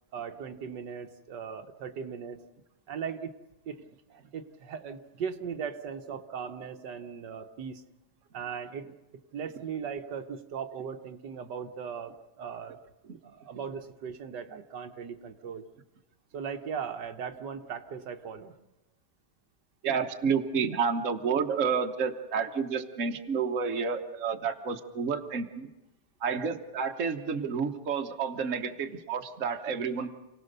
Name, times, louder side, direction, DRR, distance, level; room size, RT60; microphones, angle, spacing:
voice 1, 0.1-2.4 2.9-3.3 3.7-3.8 4.1-7.8 8.3-8.9 9.3-12.8 13.2-15.6 16.3-18.5 26.3-26.4, right 7 dB, 75° right, 7 dB, 1.6 m, -38 dB
voice 2, 19.8-25.7 26.2-30.1, right 6 dB, 50° right, 5 dB, 1.4 m, -30 dB
28.5 x 18.0 x 6.7 m, 1.1 s
omnidirectional pair, 1.9 m